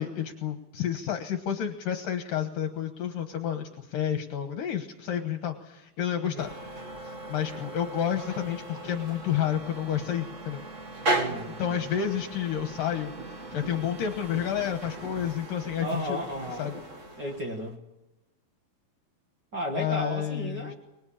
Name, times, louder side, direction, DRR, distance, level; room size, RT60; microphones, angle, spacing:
voice 1, 0.0-6.5 7.0-10.6 11.6-16.2 16.6-16.8 19.7-20.7, left 9 dB, 70° left, 5 dB, 2.8 m, -30 dB
sound 1, 6.4-17.7, right 2 dB, 80° right, 0.6 m, -37 dB
voice 2, 11.0-11.8 15.8-16.7 17.2-17.8 19.5-20.7, equal, 40° right, 2 dB, 1.7 m, -34 dB
25.0 x 21.5 x 8.8 m, 0.99 s
omnidirectional pair, 4.4 m